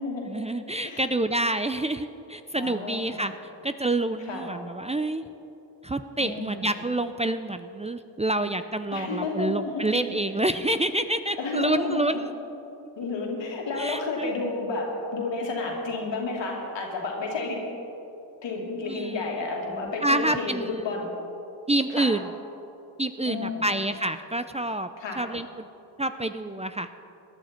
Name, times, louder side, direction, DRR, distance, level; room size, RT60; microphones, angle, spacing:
voice 1, 0.3-3.3 3.6-5.2 5.8-12.2 13.7-14.3 18.9-19.3 19.7-20.8 21.7-22.3 23.0-24.9 25.2-25.6 26.0-26.9, right 1 dB, 15° right, 10 dB, 0.5 m, -28 dB
voice 2, 2.6-3.2 4.3-4.5 6.2-6.7 8.9-9.8 11.4-12.0 13.0-17.6 18.4-21.1 21.9-22.1 23.2-23.7 25.0-25.2, left 3 dB, 80° left, -1 dB, 2.6 m, -31 dB
19.0 x 11.0 x 4.4 m, 3.0 s
cardioid pair, 60°, 44 cm